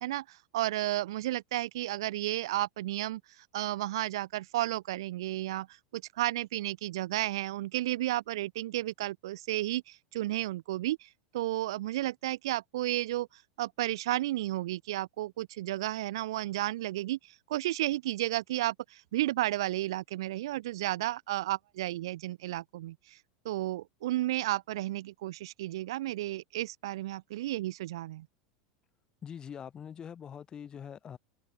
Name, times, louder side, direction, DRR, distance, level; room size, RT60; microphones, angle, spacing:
voice 1, 0.0-5.7 5.9-11.1 11.3-23.2 23.4-28.3, right 15 dB, 75° right, 0.3 m, -33 dB
voice 2, 29.2-31.2, left 8 dB, 30° left, 1.1 m, -43 dB
hypercardioid pair, 95°, 3 cm